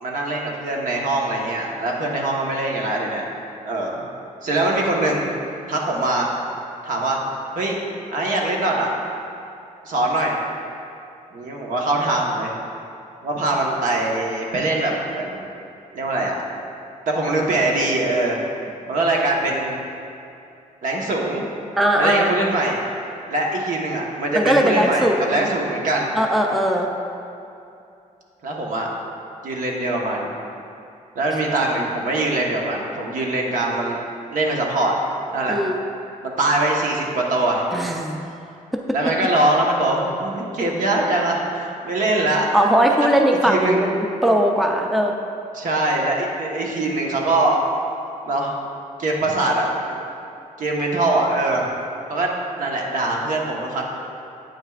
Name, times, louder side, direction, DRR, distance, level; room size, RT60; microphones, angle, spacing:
voice 1, 0.0-3.2 3.6-4.0 4.4-5.2 5.7-6.3 6.8-7.2 7.5-7.8 8.1-8.9 9.8-10.4 11.3-12.5 13.2-15.4 15.9-16.3 17.1-18.4 18.9-19.8 20.8-21.4 22.0-22.8 23.3-26.1 28.4-28.9 29.4-30.3 31.1-34.0 34.3-35.0 35.3-35.6 36.2-37.7 38.9-42.5 43.4-43.8 45.5-47.6 48.2-48.5 49.0-50.0 50.6-51.7 52.1-52.3 52.6-53.8, right 2 dB, 70° right, -1 dB, 1.2 m, -22 dB
voice 2, 21.8-22.3 24.4-25.4 26.1-26.9 35.5-35.8 37.7-38.2 42.5-45.1, equal, ahead, 1 dB, 0.4 m, -19 dB
9.0 x 9.0 x 2.4 m, 2.6 s
wide cardioid pair, 160°, 14 cm